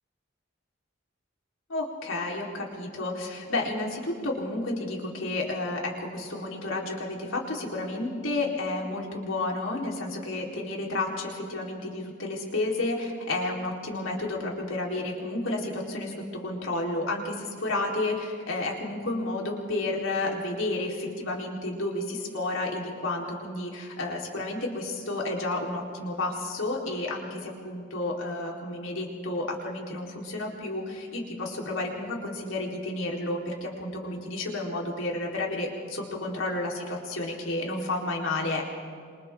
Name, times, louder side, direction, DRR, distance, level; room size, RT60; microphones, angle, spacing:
voice 1, 1.7-38.6, left 2 dB, 85° left, -1 dB, 4.1 m, -31 dB
27.5 x 27.0 x 3.8 m, 2.2 s
head